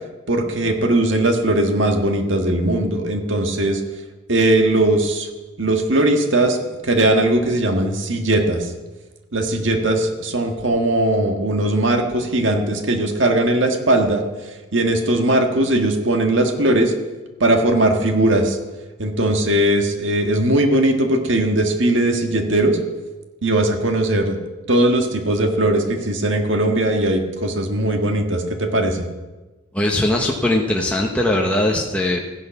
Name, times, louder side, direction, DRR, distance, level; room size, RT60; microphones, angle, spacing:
voice 1, 0.3-3.8 4.3-5.3 5.6-6.6 6.8-8.7 9.3-14.2 14.7-16.9 17.4-18.6 19.0-22.8 23.4-24.4 24.7-29.1, right 1 dB, 70° right, 4 dB, 1.7 m, -19 dB
voice 2, 29.7-32.2, left 1 dB, 5° left, -1 dB, 1.1 m, -20 dB
15.0 x 10.5 x 6.0 m, 1.2 s
head